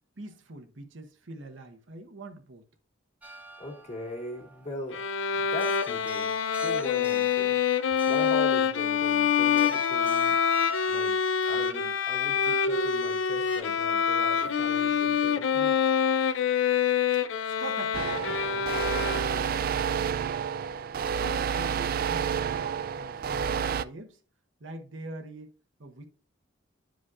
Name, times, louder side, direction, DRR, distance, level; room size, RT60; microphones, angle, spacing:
voice 1, 0.2-2.6 15.5-15.6 17.5-20.2 21.2-24.2 24.6-25.5 25.8-26.1, right 2 dB, 70° right, 1.0 m, -44 dB
sound 1, 3.2-13.6, right 2 dB, 10° right, 0.8 m, -49 dB
voice 2, 3.6-5.0 5.3-6.3 6.6-7.6 7.9-10.4 10.9-11.2 11.5-15.8, left 2 dB, 35° left, 2.0 m, -40 dB
Bowed string instrument, 4.9-19.6, left 7 dB, 75° left, 0.5 m, -26 dB
sound 2, 17.9-23.8, right 7 dB, 50° right, 0.3 m, -29 dB
11.0 x 5.0 x 2.4 m
head